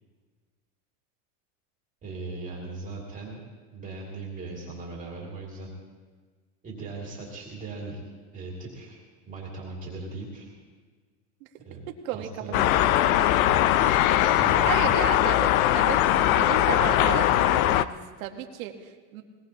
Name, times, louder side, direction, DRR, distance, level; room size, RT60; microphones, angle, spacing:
voice 1, 2.0-3.4 3.7-5.7 6.6-8.0 8.3-9.0 9.2-10.5 11.6-11.8 12.1-12.6 13.3-14.9, right 3 dB, 20° right, -3 dB, 2.5 m, -38 dB
voice 2, 12.0-13.2 14.6-19.2, right 10 dB, 80° right, 4 dB, 1.6 m, -34 dB
sound 1, 12.5-17.8, left 13 dB, 90° left, 0.7 m, -21 dB
21.0 x 19.0 x 2.9 m, 1.5 s
supercardioid pair, 170°, 41 cm